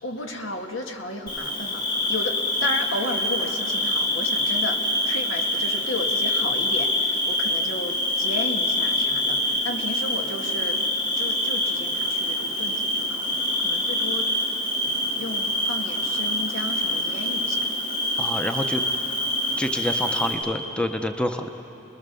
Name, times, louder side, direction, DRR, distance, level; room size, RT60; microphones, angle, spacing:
voice 1, 0.0-10.8 11.2-14.3 14.8-17.7, left 2 dB, 85° left, 3 dB, 2.0 m, -34 dB
Bird / Cricket, 1.3-20.3, left 1 dB, 50° left, 7.1 m, -25 dB
voice 2, 18.2-18.8 19.6-21.5, left 1 dB, 5° left, 6 dB, 0.7 m, -27 dB
29.0 x 21.0 x 6.9 m, 3.0 s
head